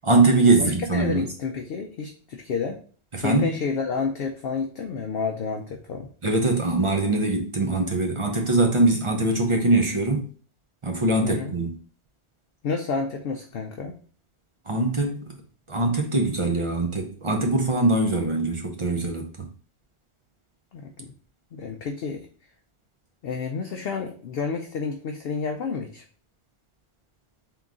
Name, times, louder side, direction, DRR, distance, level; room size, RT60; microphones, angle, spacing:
voice 1, 0.0-1.2 3.1-3.5 6.2-10.3 10.8-11.7 14.7-15.3 15.7-19.5, right 2 dB, 40° right, 0.5 m, -22 dB
voice 2, 0.6-2.8 3.2-6.1 11.2-11.5 12.6-13.9 20.7-21.1 21.5-22.3 23.2-26.0, left 5 dB, 60° left, 0.6 m, -30 dB
3.7 x 3.0 x 3.6 m
omnidirectional pair, 1.3 m